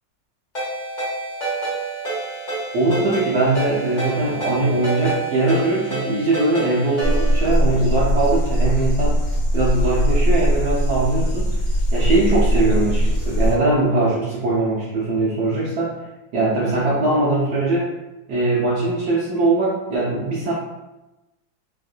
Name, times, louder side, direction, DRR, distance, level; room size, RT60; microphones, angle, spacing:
Ringtone, 0.5-7.4, right 3 dB, 30° left, 1.1 m, -28 dB
voice 1, 2.7-9.2 9.5-11.5 11.9-16.0 16.3-17.9 18.3-20.5, right 2 dB, 65° right, -7 dB, 1.1 m, -21 dB
sound 1, 7.0-13.6, equal, 65° left, 1.5 m, -20 dB
3.5 x 2.5 x 2.4 m, 1.0 s
omnidirectional pair, 2.1 m